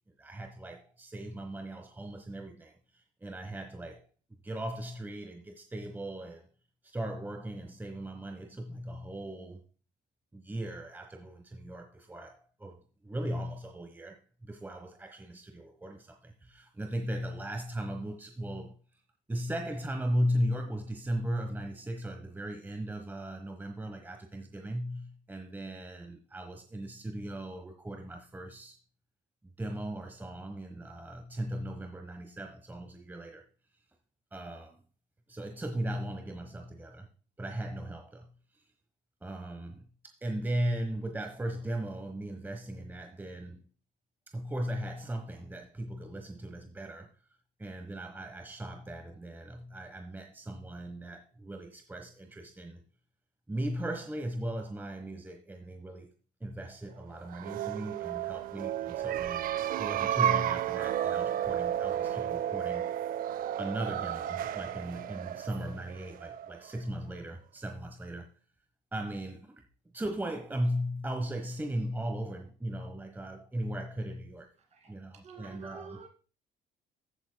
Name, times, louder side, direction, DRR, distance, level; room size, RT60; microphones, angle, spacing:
voice 1, 0.2-4.0 4.4-6.5 6.8-9.6 10.3-18.7 19.3-28.8 29.6-33.4 34.3-34.8 35.3-37.1 37.4-38.3 38.5-38.6 39.2-43.7 44.3-47.1 47.6-52.8 53.5-56.1 56.4-59.5 59.8-62.9 63.6-68.3 68.9-69.6 69.9-74.5 74.9-76.0, right 1 dB, 10° right, 1.1 m, -37 dB
sound 1, 57.2-66.8, right 11 dB, 55° right, 0.4 m, -32 dB
voice 2, 75.2-76.1, right 5 dB, 40° right, 2.3 m, -48 dB
15.0 x 8.3 x 2.2 m
cardioid pair, 110°, 17 cm